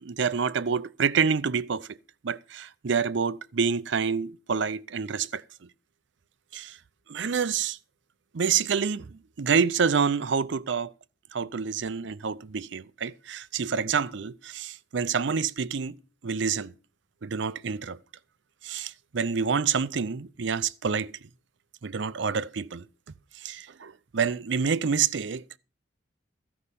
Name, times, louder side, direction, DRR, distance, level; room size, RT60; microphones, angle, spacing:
voice 1, 0.0-2.0 2.2-5.4 6.5-6.8 7.1-7.8 8.3-10.9 11.3-16.0 16.2-16.7 17.2-18.0 18.6-21.1 21.8-22.8 23.4-25.4, right 6 dB, 60° right, 0.5 m, -27 dB
13.5 x 5.5 x 8.3 m
head